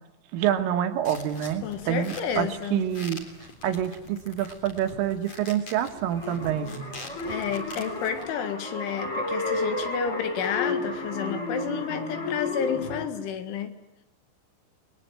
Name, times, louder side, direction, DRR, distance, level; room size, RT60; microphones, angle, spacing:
voice 1, 0.3-3.2 3.6-6.7, right 10 dB, 80° right, 6 dB, 4.1 m, -27 dB
sound 1, 1.1-8.3, left 2 dB, 35° left, 4.3 m, -45 dB
voice 2, 1.6-2.9 7.2-13.8, left 8 dB, 70° left, 8 dB, 4.0 m, -31 dB
sound 2, 5.9-13.0, left 2 dB, 15° left, 3.9 m, -32 dB
30.0 x 21.0 x 9.0 m, 0.93 s
omnidirectional pair, 5.8 m